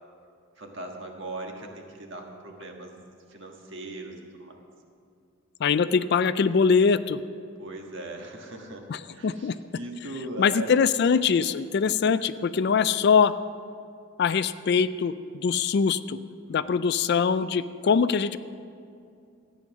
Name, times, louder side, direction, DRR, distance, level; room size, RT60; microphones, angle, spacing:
voice 1, 0.6-2.9 3.3-4.6 7.6-8.8 9.1-10.8 11.7-12.0 16.5-17.0, right 2 dB, 55° right, 2 dB, 1.6 m, -39 dB
voice 2, 5.6-7.2 8.9-9.5 10.4-13.3 14.2-16.2 16.5-18.4, left 6 dB, 50° left, 14 dB, 0.3 m, -23 dB
14.0 x 9.3 x 6.2 m, 2.4 s
head